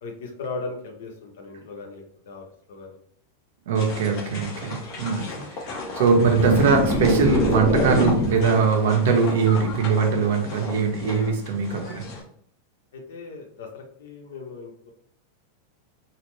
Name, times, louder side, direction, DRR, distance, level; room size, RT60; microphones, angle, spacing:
voice 1, 0.0-3.0 4.5-4.7 12.9-14.9, left 3 dB, 70° left, 1 dB, 1.0 m, -38 dB
sound 1, 3.7-12.2, left 2 dB, 35° left, 0.8 m, -36 dB
voice 2, 3.7-5.6 6.0-12.0, right 5 dB, 65° right, 3 dB, 0.9 m, -21 dB
sound 2, 6.0-8.5, left 2 dB, 15° left, 0.5 m, -24 dB
4.0 x 2.1 x 3.2 m, 0.67 s
supercardioid pair, 180°, 0 cm